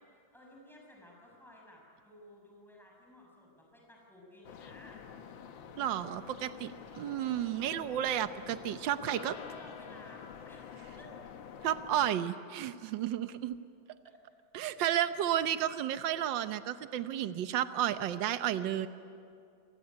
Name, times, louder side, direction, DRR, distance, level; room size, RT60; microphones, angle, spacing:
voice 1, 0.1-5.0 8.3-8.5 8.9-11.2 14.0-14.2 14.8-15.0, left 1 dB, ahead, -2 dB, 6.5 m, -56 dB
sound 1, 4.4-12.1, left 7 dB, 85° left, 1.9 m, -48 dB
voice 2, 5.8-6.7 6.9-9.3 11.6-13.6 14.5-18.9, right 11 dB, 75° right, 11 dB, 1.6 m, -32 dB
29.5 x 20.0 x 9.7 m, 2.5 s
omnidirectional pair, 2.0 m